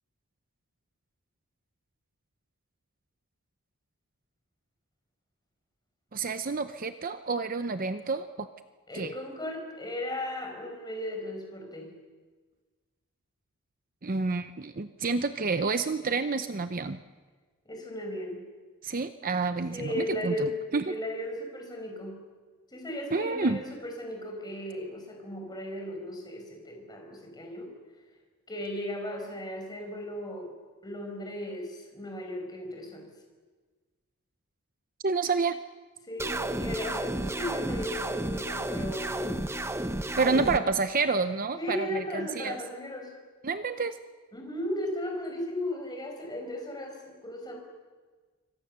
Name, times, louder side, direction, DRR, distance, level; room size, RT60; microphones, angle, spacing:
voice 1, 6.1-8.5 8.9-9.1 14.0-17.0 18.8-20.9 23.1-23.6 35.0-35.6 40.2-42.6 43.4-44.0, right 4 dB, 40° right, 10 dB, 0.7 m, -29 dB
voice 2, 8.9-12.0 17.7-18.4 19.7-22.2 22.7-27.7 28.5-30.5 30.8-33.1 36.1-39.4 40.3-40.5 41.6-43.1 44.3-47.6, left 1 dB, 20° left, 2 dB, 5.7 m, -36 dB
sound 1, 36.2-40.6, right 1 dB, 10° right, 0.9 m, -32 dB
27.0 x 24.5 x 6.9 m, 1.4 s
head